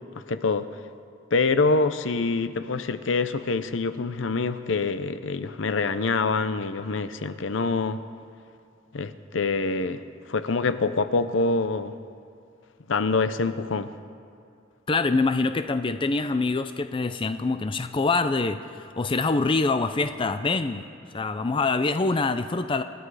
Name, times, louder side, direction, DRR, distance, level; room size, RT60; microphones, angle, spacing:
voice 1, 0.3-0.7 1.3-8.0 8.9-10.0 10.3-11.9 12.9-13.9 15.1-15.2, left 3 dB, 70° left, 12 dB, 0.7 m, -25 dB
voice 2, 14.9-20.8 21.1-22.8, left 3 dB, 25° left, 10 dB, 0.5 m, -25 dB
26.5 x 10.0 x 4.8 m, 2.5 s
head